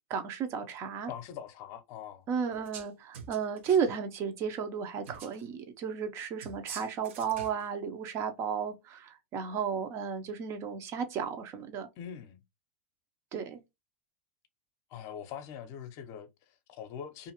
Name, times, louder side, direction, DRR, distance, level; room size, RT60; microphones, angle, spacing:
voice 1, 0.1-1.1 2.3-11.9 13.3-13.6, right 7 dB, 40° right, 0.7 m, -33 dB
voice 2, 1.1-2.3 12.0-12.4 14.9-17.3, left 8 dB, 50° left, 0.6 m, -43 dB
sound 1, 2.5-2.9 3.1-3.9 5.0-5.4 6.4-7.7, right 6 dB, 70° right, 0.8 m, -45 dB
2.5 x 2.5 x 2.8 m
hypercardioid pair, 120°, 7 cm